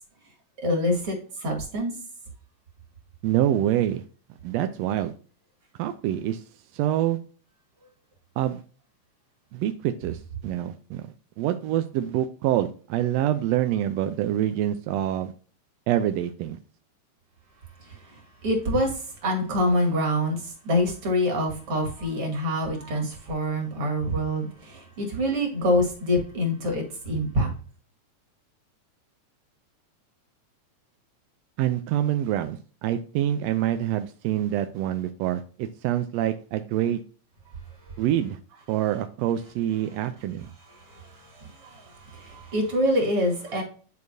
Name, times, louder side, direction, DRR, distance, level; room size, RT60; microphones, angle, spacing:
voice 1, 0.6-1.9 17.8-27.5 40.7-43.6, left 1 dB, 50° right, 3.0 m, -26 dB
voice 2, 3.2-4.0 4.4-5.1 5.8-6.4 6.7-7.2 8.4-8.6 9.5-11.1 11.4-15.3 15.9-16.6 31.6-37.0 38.0-38.4 38.7-40.5, right 12 dB, 80° right, 1.5 m, -26 dB
10.5 x 4.7 x 2.6 m
omnidirectional pair, 3.3 m